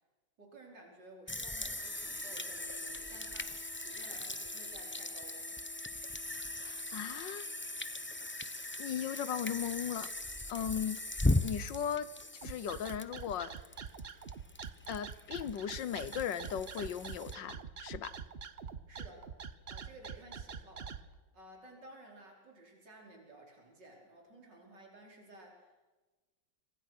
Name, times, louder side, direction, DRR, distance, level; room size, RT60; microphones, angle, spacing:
voice 1, 0.4-5.6 18.9-19.3 19.7-20.9 21.3-25.9, right 1 dB, 70° right, 5.7 m, -55 dB
sound 1, 1.3-17.3, left 2 dB, 15° left, 0.4 m, -39 dB
sound 2, 1.8-13.8, left 2 dB, 10° right, 7.1 m, -60 dB
voice 2, 6.6-7.5 8.8-10.1 10.5-11.0 11.4-12.1 12.4-13.5 14.9-18.1, left 9 dB, 75° left, 1.7 m, -37 dB
sound 3, 12.4-21.0, right 6 dB, 40° right, 1.0 m, -44 dB
26.5 x 25.0 x 6.1 m
omnidirectional pair, 2.0 m